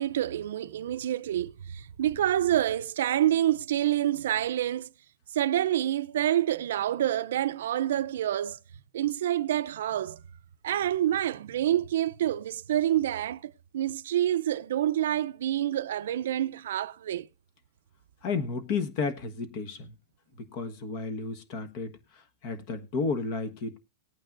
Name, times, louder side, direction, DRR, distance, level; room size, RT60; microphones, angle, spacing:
voice 1, 0.0-4.9 5.3-8.6 8.9-10.2 10.6-17.3, right 12 dB, 75° right, 0.5 m, -27 dB
voice 2, 18.2-19.9 20.4-22.0 22.4-23.8, left 4 dB, 45° left, 1.4 m, -32 dB
18.5 x 9.0 x 2.5 m
supercardioid pair, 155°, 0 cm